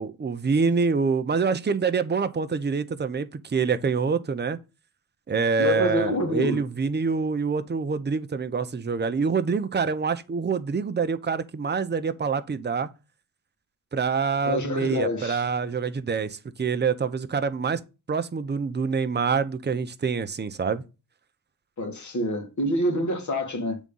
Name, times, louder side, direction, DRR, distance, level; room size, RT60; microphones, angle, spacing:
voice 1, 0.0-4.6 5.3-12.9 13.9-17.8 18.1-20.8, right 5 dB, 25° right, 0.8 m, -26 dB
voice 2, 5.6-6.6 14.5-15.4 21.8-23.8, left 1 dB, 40° left, 2.1 m, -26 dB
7.2 x 3.7 x 5.4 m
supercardioid pair, 55°, 44 cm